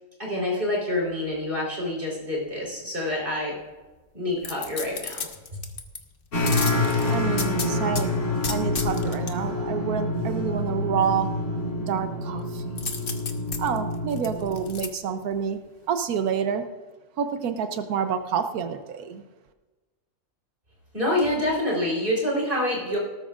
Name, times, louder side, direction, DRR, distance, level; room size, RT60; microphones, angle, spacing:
voice 1, 0.2-3.6 4.1-5.3 20.9-23.0, left 1 dB, 35° right, -4 dB, 4.1 m, -27 dB
sound 1, 4.4-6.0 6.5-8.0 8.4-9.3 12.8-14.9 15.3-15.4, left 5 dB, 45° left, 1.1 m, -33 dB
sound 2, 6.3-14.7, left 2 dB, 90° left, 3.1 m, -27 dB
voice 2, 7.1-11.3 11.9-12.6 13.6-15.6 15.9-16.6 17.2-19.2, right 7 dB, 90° right, 8 dB, 1.3 m, -28 dB
19.0 x 13.0 x 2.5 m, 1.2 s
omnidirectional pair, 1.5 m